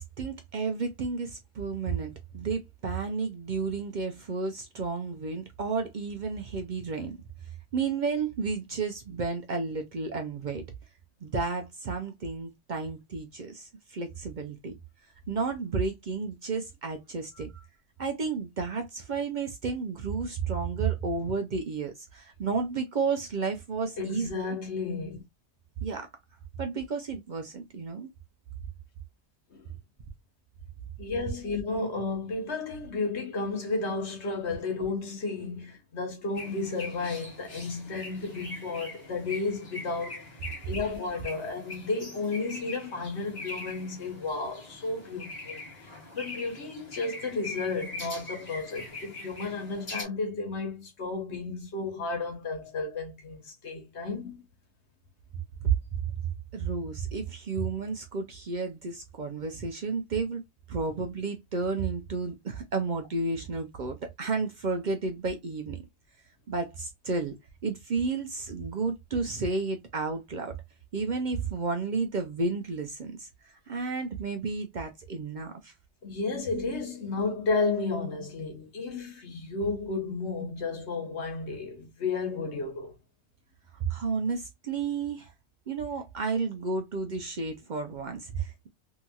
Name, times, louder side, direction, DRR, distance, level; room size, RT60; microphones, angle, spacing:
voice 1, 0.0-7.2 7.7-10.6 11.2-14.7 15.3-17.5 18.0-24.3 25.8-26.1 26.6-28.1 55.6-55.7 56.5-60.4 60.7-65.9 66.5-67.3 67.6-70.6 70.9-75.7 83.7-85.3 85.7-88.7, right 4 dB, 55° right, 0.6 m, -32 dB
voice 2, 24.0-25.2 29.5-29.6 31.0-40.2 40.6-45.9 46.1-54.4 76.0-83.0, left 3 dB, 75° left, 1.3 m, -32 dB
sound 1, 36.3-50.0, left 2 dB, 40° left, 1.1 m, -42 dB
2.9 x 2.7 x 2.2 m
omnidirectional pair, 1.1 m